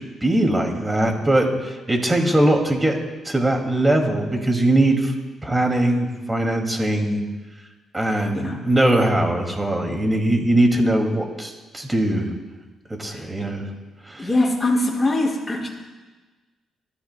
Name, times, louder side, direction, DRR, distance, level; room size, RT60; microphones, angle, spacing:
voice 1, 0.2-3.0 3.2-5.1 5.4-7.2 7.9-12.3 12.9-13.7 14.1-14.3, right 1 dB, 15° right, 2 dB, 2.3 m, -21 dB
voice 2, 14.2-15.7, left 2 dB, 15° left, -4 dB, 5.4 m, -22 dB
24.0 x 14.5 x 2.2 m, 1.3 s
cardioid pair, 90°, 0 cm